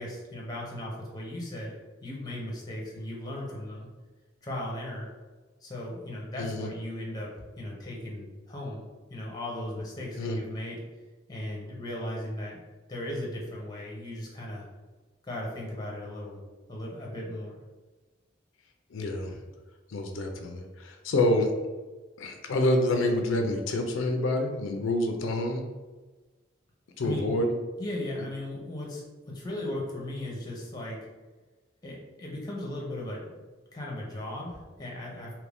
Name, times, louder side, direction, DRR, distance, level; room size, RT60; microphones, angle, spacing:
voice 1, 0.0-1.8 2.0-3.9 4.4-5.1 5.6-7.3 7.6-8.8 9.1-10.8 11.3-12.6 12.9-14.6 15.2-16.4 16.7-17.6 27.0-27.3 27.8-31.0 31.8-33.4 33.7-35.3, left 1 dB, 20° left, -3 dB, 0.7 m, -37 dB
voice 2, 6.4-6.7 10.1-10.4 18.9-19.4 19.9-21.5 22.2-25.7 27.0-27.5, left 1 dB, 85° left, 4 dB, 0.4 m, -27 dB
2.8 x 2.5 x 3.4 m, 1.3 s
head